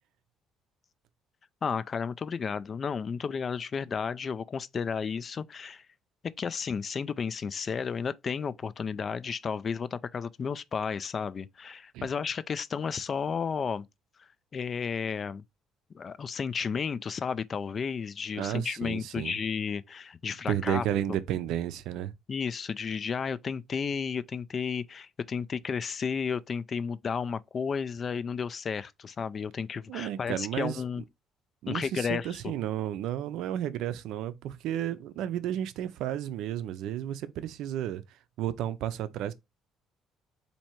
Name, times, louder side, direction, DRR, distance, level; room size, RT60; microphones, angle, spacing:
voice 1, 1.6-5.8 6.2-13.9 14.2-15.4 15.9-20.8 22.3-31.0 31.7-32.5, left 6 dB, 35° left, 0.3 m, -33 dB
voice 2, 18.4-19.4 20.5-22.1 29.9-30.8 31.6-38.0 38.4-39.3, right 11 dB, 75° right, 0.5 m, -32 dB
4.3 x 2.7 x 4.4 m
cardioid pair, 135°, 0 cm